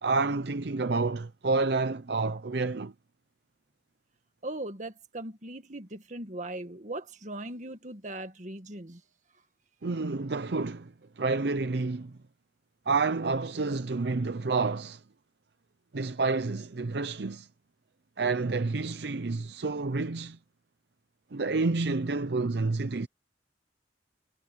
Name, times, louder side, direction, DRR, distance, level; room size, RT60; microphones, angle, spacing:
voice 1, 0.0-2.9 9.8-12.2 12.9-15.0 15.9-17.5 18.2-20.4 21.3-23.1, right 3 dB, 65° right, 0.7 m, -29 dB
voice 2, 4.4-9.0, right 1 dB, 45° right, 1.9 m, -39 dB
head